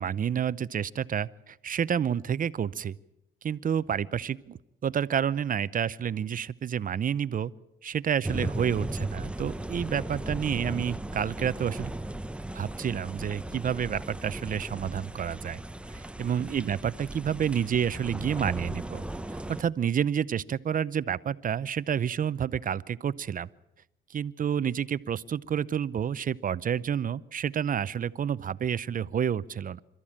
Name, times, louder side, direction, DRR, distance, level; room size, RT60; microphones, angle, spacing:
voice 1, 0.0-3.0 3.4-7.5 7.8-11.9 12.5-15.6 15.9-19.0 19.5-23.5 24.1-29.8, right 8 dB, 45° right, 17 dB, 0.7 m, -29 dB
sound 1, 8.2-19.6, right 1 dB, 5° right, 0.7 m, -36 dB
27.0 x 13.5 x 8.8 m, 0.93 s
cardioid pair, 90°, 20 cm